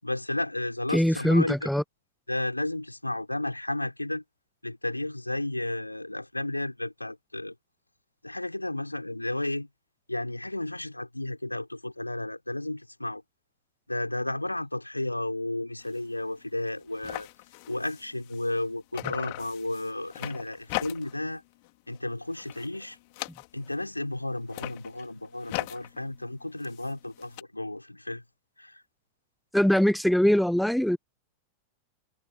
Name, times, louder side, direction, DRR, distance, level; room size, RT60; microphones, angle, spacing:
voice 1, 0.0-1.7 2.3-4.2 4.6-7.5 8.2-9.7 10.1-13.2 13.9-17.3 17.7-21.4 21.9-23.0 23.5-28.2 28.6-28.8, left 1 dB, 85° left, 5.7 m, -33 dB
voice 2, 0.9-1.8 29.5-31.0, equal, ahead, 0.9 m, -22 dB
sound 1, 15.8-16.0 16.4-16.5 16.7-18.7 18.9-21.3 21.6-22.0 22.3-23.8 24.4-27.4, left 28 dB, 45° left, 2.7 m, -39 dB
figure-of-eight pair, 90°, 0 cm